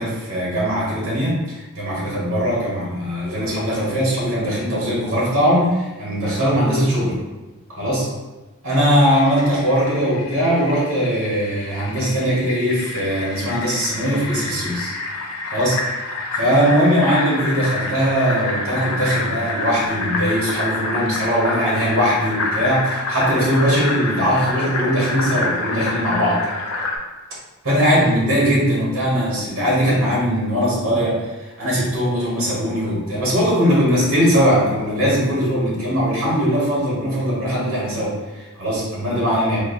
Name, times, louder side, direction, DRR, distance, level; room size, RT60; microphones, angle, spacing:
voice 1, 0.0-7.2 7.7-8.1 8.6-14.9 15.5-15.8 16.3-26.4 27.6-39.6, equal, 65° right, -6 dB, 1.3 m, -20 dB
Fill (with liquid), 8.9-27.0, left 3 dB, 90° left, 0.6 m, -28 dB
4.5 x 2.6 x 2.6 m, 1.1 s
head